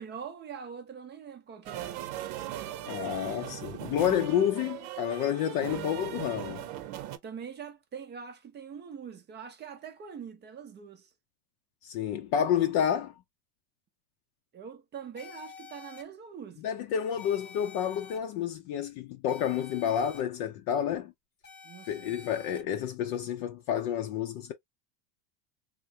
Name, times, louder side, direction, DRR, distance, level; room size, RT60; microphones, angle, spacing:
voice 1, 0.0-1.9 7.2-11.1 14.5-16.6 21.6-22.2, right 7 dB, 25° right, 0.5 m, -43 dB
sound 1, 1.7-7.2, right 12 dB, 75° right, 0.8 m, -39 dB
voice 2, 2.9-6.7 11.8-13.1 16.6-21.1 21.9-24.5, left 9 dB, 55° left, 0.6 m, -29 dB
sound 2, 15.2-16.0 17.2-18.2 19.3-20.2 21.4-22.6, left 5 dB, 25° left, 0.8 m, -49 dB
3.6 x 2.1 x 2.7 m
supercardioid pair, 140°, 45 cm